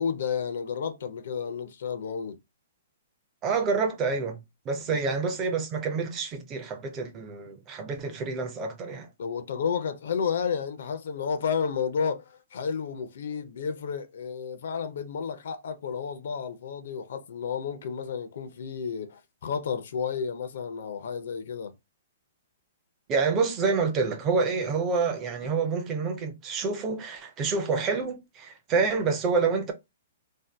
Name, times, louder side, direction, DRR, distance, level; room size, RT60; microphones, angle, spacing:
voice 1, 0.0-2.4 4.9-5.0 9.2-21.7, left 6 dB, 55° left, 0.5 m, -31 dB
voice 2, 3.4-9.1 23.1-29.7, right 4 dB, 15° right, 0.4 m, -28 dB
2.6 x 2.2 x 3.3 m
hypercardioid pair, 180°, 0 cm